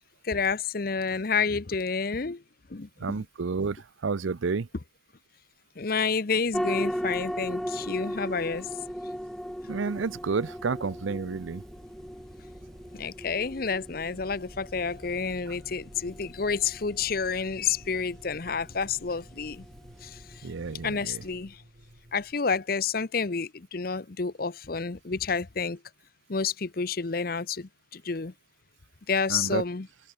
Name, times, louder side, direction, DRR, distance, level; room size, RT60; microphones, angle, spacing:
voice 1, 0.2-2.4 2.7-3.2 4.7-4.8 5.8-8.7 12.9-19.7 20.0-20.5 20.8-21.6 22.1-25.8 26.3-28.3 29.1-29.9, left 5 dB, 50° left, 0.7 m, -29 dB
voice 2, 3.0-4.7 9.7-11.6 20.4-21.2 29.3-29.6, right 4 dB, 85° right, 0.6 m, -30 dB
sound 1, 6.5-21.3, equal, ahead, 1.1 m, -38 dB
sound 2, 9.7-22.3, equal, 40° right, 3.7 m, -52 dB
open air
head